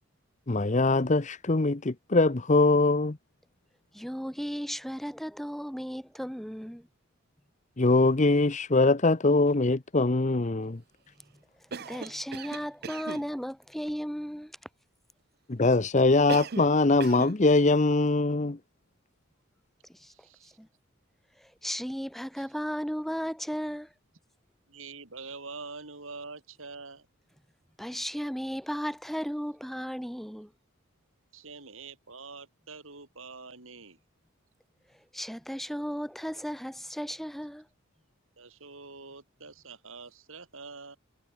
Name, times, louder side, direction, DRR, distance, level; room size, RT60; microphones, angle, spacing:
voice 1, 0.5-3.2 7.8-10.8 15.5-18.6, left 2 dB, 35° left, 0.8 m, -23 dB
voice 2, 3.9-6.9 11.8-14.6 19.9-20.7 21.4-23.9 27.8-30.5 34.9-37.7, equal, ahead, 4.7 m, -35 dB
Cough, 11.7-13.3 16.3-16.8 17.0-17.4, right 5 dB, 45° right, 0.7 m, -37 dB
voice 3, 20.1-20.6 24.7-27.1 31.3-34.0 38.4-41.0, right 4 dB, 70° right, 3.6 m, -45 dB
head